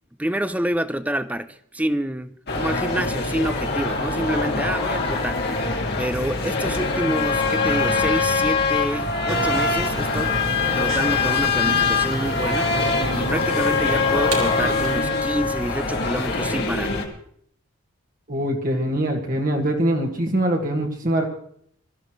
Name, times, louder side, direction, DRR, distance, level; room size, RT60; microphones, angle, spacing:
voice 1, 0.2-5.4 6.0-10.4 10.7-12.7 13.1-16.9, right 1 dB, 5° right, 0.5 m, -27 dB
sound 1, 2.5-17.0, left 4 dB, 45° left, 2.3 m, -23 dB
sound 2, 9.3-15.0, right 2 dB, 70° right, 3.2 m, -32 dB
voice 2, 18.3-21.2, right 1 dB, 40° right, 2.0 m, -23 dB
22.5 x 14.0 x 3.2 m
head